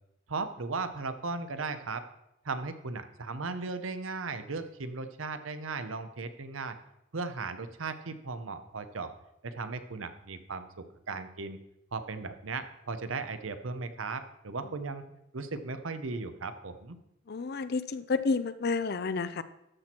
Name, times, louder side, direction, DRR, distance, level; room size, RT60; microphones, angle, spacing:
voice 1, 0.3-2.0 2.4-6.8 7.1-9.1 9.4-10.7 11.1-11.6 11.9-15.0 15.3-17.0, right 4 dB, 80° right, 10 dB, 0.9 m, -36 dB
voice 2, 17.3-19.4, left 4 dB, 55° left, 14 dB, 0.5 m, -30 dB
13.0 x 6.1 x 4.4 m, 0.85 s
head